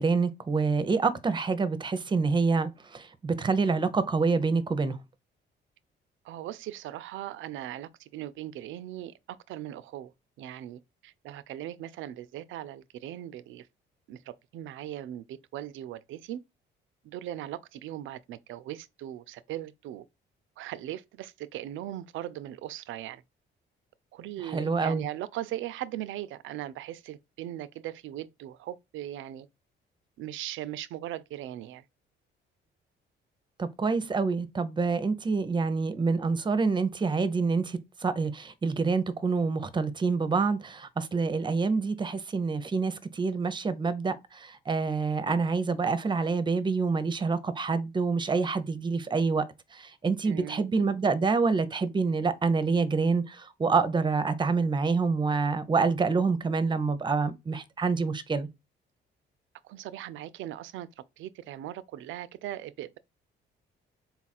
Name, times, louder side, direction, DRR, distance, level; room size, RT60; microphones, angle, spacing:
voice 1, 0.0-5.0 24.4-25.0 33.6-49.5 49.7-58.5, right 4 dB, 25° right, 0.6 m, -27 dB
voice 2, 6.2-10.1 10.4-13.7 14.1-16.4 17.0-20.1 20.6-23.2 24.1-29.5 30.2-31.8 50.2-50.6 59.6-63.0, right 13 dB, 80° right, 0.4 m, -39 dB
4.0 x 2.4 x 4.1 m
cardioid pair, 90°, 20 cm